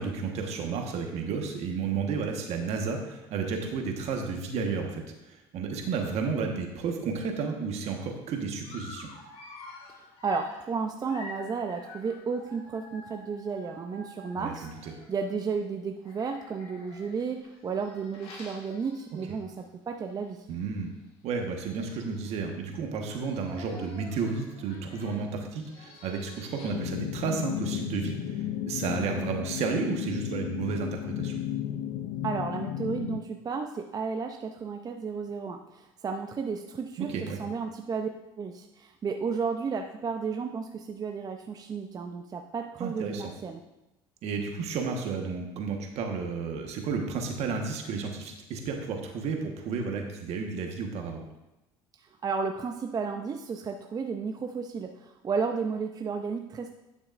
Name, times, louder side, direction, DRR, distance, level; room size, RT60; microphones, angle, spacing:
voice 1, 0.0-9.1 14.4-14.9 20.5-20.9 21.2-31.4 37.0-37.4 42.8-43.2 44.2-51.2, right 5 dB, 60° right, 2 dB, 1.4 m, -32 dB
Dog, 8.6-15.2 16.0-19.6 20.0-20.2 20.5-20.6 21.4-21.5 21.7-22.3 22.9-27.0, left 2 dB, 50° left, 1.8 m, -49 dB
voice 2, 10.0-20.5 32.2-38.1 38.4-43.6 52.2-56.8, right 5 dB, 30° right, 4 dB, 0.6 m, -33 dB
sound 1, 26.7-33.2, left 10 dB, 65° left, 0.5 m, -33 dB
10.5 x 6.3 x 2.6 m, 0.97 s
supercardioid pair, 85°, 12 cm